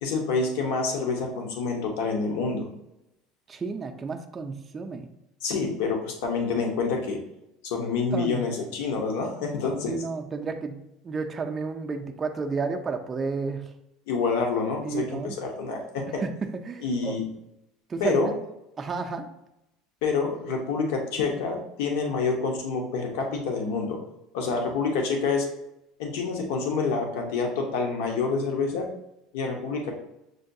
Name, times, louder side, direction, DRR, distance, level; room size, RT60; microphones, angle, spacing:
voice 1, 0.0-2.7 5.4-7.2 7.6-10.0 14.1-16.2 16.8-17.2 18.0-18.3 20.0-24.0 24.3-25.5 26.0-28.9 29.3-29.9, left 4 dB, 80° left, 2 dB, 0.8 m, -27 dB
voice 2, 3.5-5.1 8.1-8.5 9.9-10.8 11.0-13.7 14.8-15.4 16.2-17.2 17.9-18.3 18.8-19.3, right 4 dB, 20° right, 4 dB, 0.3 m, -31 dB
6.3 x 2.2 x 2.6 m, 0.87 s
cardioid pair, 155°, 0 cm